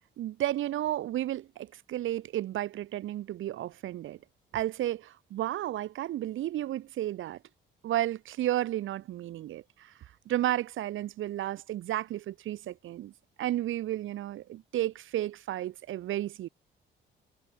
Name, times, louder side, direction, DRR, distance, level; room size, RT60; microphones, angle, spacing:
voice 1, 0.2-4.2 4.5-7.4 7.8-9.9 10.3-13.1 13.4-16.5, right 13 dB, 80° right, 4.2 m, -32 dB
cardioid pair, 90°, 20 cm